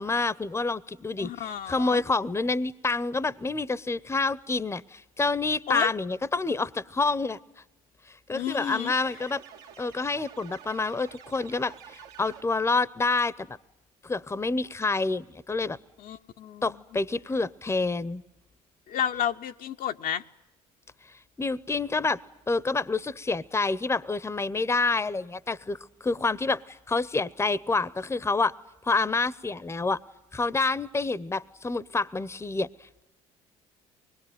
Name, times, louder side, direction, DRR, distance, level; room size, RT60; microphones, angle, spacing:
voice 1, 0.0-7.4 8.3-9.4 9.8-13.6 14.0-15.8 16.6-18.2 21.4-22.2 22.5-28.5 28.8-30.0 30.3-32.7, left 3 dB, 15° left, 0.8 m, -28 dB
voice 2, 1.2-2.0 5.7-5.9 8.3-8.9 16.0-16.8 18.9-20.2, left 9 dB, 55° left, 0.8 m, -31 dB
sound 1, 8.6-12.8, right 9 dB, 70° right, 1.8 m, -49 dB
24.5 x 21.5 x 9.2 m
hypercardioid pair, 70°, 17 cm